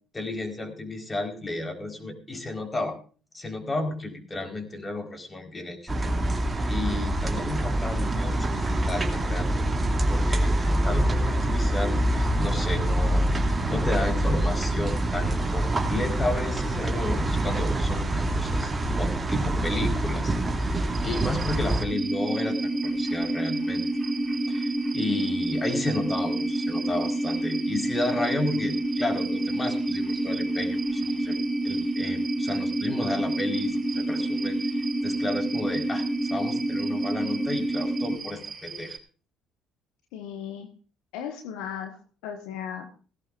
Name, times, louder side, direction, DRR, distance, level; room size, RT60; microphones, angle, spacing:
voice 1, 0.1-3.0 3.3-5.9 6.7-9.7 10.1-23.8 24.5-39.0, left 2 dB, 25° left, 4 dB, 4.5 m, -33 dB
sound 1, 5.9-21.8, right 1 dB, 25° right, 2.6 m, -25 dB
sound 2, 20.9-39.0, right 6 dB, 40° right, 5.1 m, -41 dB
sound 3, 21.9-38.2, right 1 dB, ahead, 2.3 m, -28 dB
voice 2, 40.1-40.7 41.1-42.0 42.2-42.9, left 8 dB, 75° left, 5 dB, 1.5 m, -36 dB
17.0 x 17.0 x 2.6 m, 0.38 s
hypercardioid pair, 50°, 0 cm